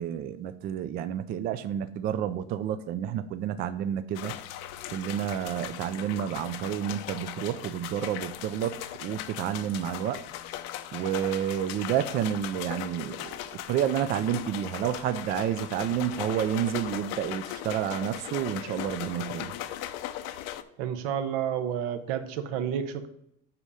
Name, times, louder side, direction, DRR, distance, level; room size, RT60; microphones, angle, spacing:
voice 1, 0.0-4.3 4.9-10.2 10.9-19.5, right 10 dB, 30° right, 11 dB, 0.4 m, -30 dB
sound 1, 4.2-20.6, left 12 dB, 55° left, 0.7 m, -38 dB
voice 2, 20.8-23.1, right 9 dB, 85° right, 9 dB, 1.1 m, -30 dB
8.2 x 5.5 x 4.9 m, 0.77 s
cardioid pair, 165°, 30 cm